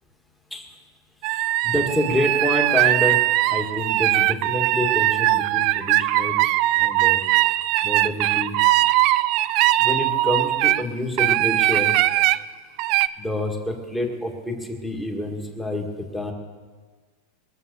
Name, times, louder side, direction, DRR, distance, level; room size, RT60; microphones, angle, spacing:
sound 1, 1.2-10.8 11.2-12.4 12.8-13.1, right 17 dB, 40° right, 0.4 m, -20 dB
voice 1, 1.3-3.2 3.5-6.4 6.8-7.2 7.8-8.5 9.8-12.0 13.2-16.3, left 1 dB, 5° left, 2 dB, 1.8 m, -27 dB
22.0 x 7.4 x 6.9 m, 1.5 s
supercardioid pair, 160°, 0 cm